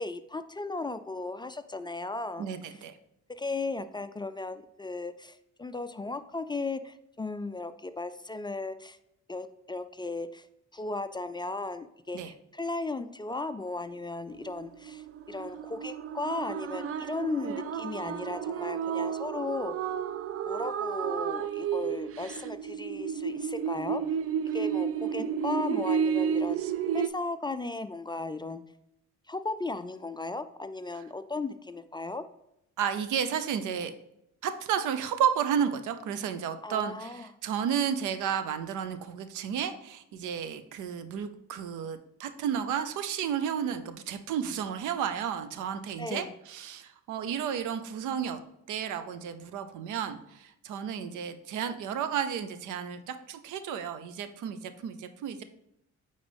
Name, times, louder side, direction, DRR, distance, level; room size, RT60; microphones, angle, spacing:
voice 1, 0.0-2.5 3.3-9.0 9.3-10.5 10.7-19.7 20.5-24.0 24.5-26.6 26.9-28.6 29.3-32.2 36.6-37.3 46.0-46.3, left 3 dB, 15° left, 11 dB, 0.3 m, -36 dB
voice 2, 2.4-3.0 12.1-12.3 30.9-31.0 32.8-33.9 34.4-48.4 48.7-55.4, right 8 dB, 85° right, 10 dB, 0.7 m, -32 dB
sound 1, 14.3-27.1, right 8 dB, 50° right, 0.5 m, -32 dB
8.8 x 4.0 x 3.4 m, 0.81 s
cardioid pair, 90°, 30 cm